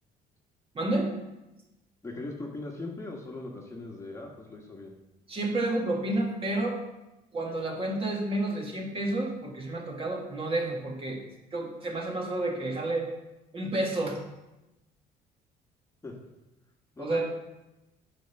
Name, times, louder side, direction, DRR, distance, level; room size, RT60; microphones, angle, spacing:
voice 1, 0.7-1.1 5.3-6.8 7.3-11.2 11.5-13.1 13.5-14.2 17.0-17.2, right 2 dB, 35° right, 0 dB, 1.8 m, -30 dB
voice 2, 2.0-4.9 11.2-11.3 16.0-16.1 17.0-17.2, left 2 dB, 15° left, -1 dB, 1.3 m, -40 dB
9.1 x 3.6 x 6.9 m, 1.0 s
cardioid pair, 110°, 17 cm